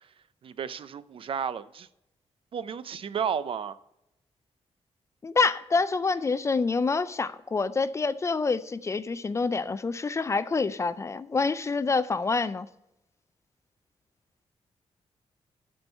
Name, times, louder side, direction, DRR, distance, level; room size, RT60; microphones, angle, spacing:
voice 1, 0.4-1.9 2.5-3.8, right 7 dB, 55° right, 0.4 m, -32 dB
voice 2, 5.2-12.7, left 4 dB, 25° left, 0.3 m, -27 dB
11.0 x 4.5 x 5.3 m
wide cardioid pair, 145°, 11 cm